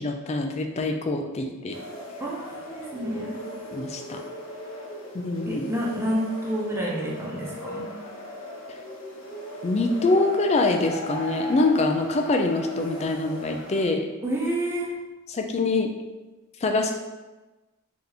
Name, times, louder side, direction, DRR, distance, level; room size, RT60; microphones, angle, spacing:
voice 1, 0.0-1.8 3.7-4.2 5.1-5.7 9.6-14.0 15.3-15.9 16.6-16.9, left 2 dB, 30° left, 4 dB, 0.3 m, -24 dB
sound 1, 1.7-13.9, equal, 60° left, 0.8 m, -38 dB
voice 2, 2.2-3.4 5.5-7.9 14.2-14.9, equal, 10° right, -4 dB, 0.7 m, -29 dB
3.3 x 2.9 x 3.9 m, 1.2 s
head